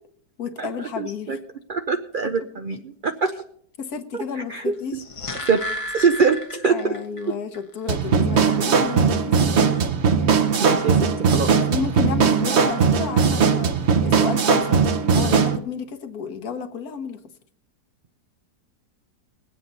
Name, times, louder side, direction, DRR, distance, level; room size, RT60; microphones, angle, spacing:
voice 1, 0.4-1.4 2.2-2.3 3.8-5.0 6.7-9.7 11.5-17.2, left 6 dB, 65° left, 8 dB, 1.5 m, -32 dB
voice 2, 1.0-1.4 1.7-3.3 4.5-5.0 5.5-5.7 5.9-7.0 9.7-9.8 10.6-11.0 11.3-11.5, right 5 dB, 70° right, 7 dB, 0.4 m, -23 dB
sound 1, 4.8-7.2 7.5-7.6, left 1 dB, 30° left, 0.7 m, -32 dB
sound 2, 7.9-15.6, right 6 dB, 50° right, 1.0 m, -19 dB
21.5 x 8.3 x 4.0 m, 0.64 s
omnidirectional pair, 1.8 m